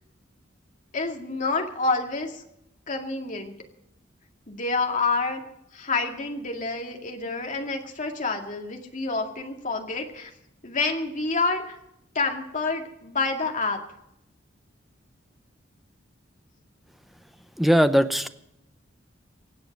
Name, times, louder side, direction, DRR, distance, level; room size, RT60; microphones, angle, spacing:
voice 1, 0.9-2.4 2.9-3.5 4.5-5.4 5.7-10.3 10.6-11.8 12.1-13.8, left 3 dB, 40° left, 2 dB, 2.2 m, -28 dB
voice 2, 17.6-18.3, equal, ahead, 10 dB, 0.7 m, -19 dB
24.5 x 8.6 x 5.3 m, 0.79 s
head